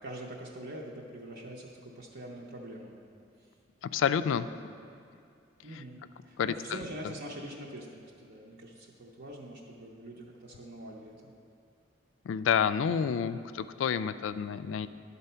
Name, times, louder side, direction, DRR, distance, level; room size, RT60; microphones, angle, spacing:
voice 1, 0.0-2.9 4.2-4.5 5.6-11.1, right 1 dB, 60° right, -2 dB, 0.7 m, -44 dB
voice 2, 3.9-4.4 6.4-6.5 12.3-14.9, left 7 dB, 80° left, 13 dB, 0.3 m, -28 dB
11.0 x 4.1 x 5.5 m, 2.4 s
head